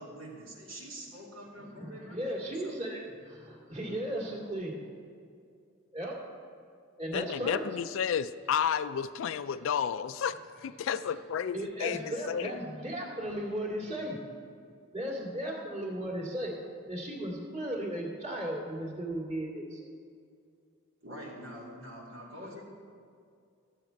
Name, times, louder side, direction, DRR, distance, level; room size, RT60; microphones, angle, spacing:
voice 1, 0.0-2.3 2.6-2.8 21.0-22.6, equal, 90° right, -5 dB, 2.4 m, -45 dB
voice 2, 1.5-4.9 5.9-6.2 7.0-7.7 11.5-14.2 14.9-16.6 16.9-19.9, right 1 dB, 35° right, -2 dB, 2.2 m, -36 dB
voice 3, 7.1-10.3 10.6-12.5, left 8 dB, 65° left, 14 dB, 0.3 m, -31 dB
13.5 x 8.3 x 4.5 m, 2.3 s
head